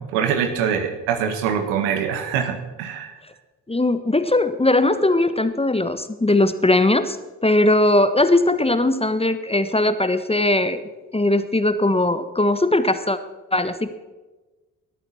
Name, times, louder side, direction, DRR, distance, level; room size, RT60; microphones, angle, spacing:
voice 1, 0.0-3.1, right 7 dB, 70° right, 7 dB, 1.9 m, -24 dB
voice 2, 3.7-7.2 7.4-10.8 11.1-13.2 13.5-14.0, left 2 dB, 10° left, 11 dB, 1.3 m, -19 dB
19.0 x 13.0 x 4.3 m, 1.2 s
figure-of-eight pair, 40°, 48 cm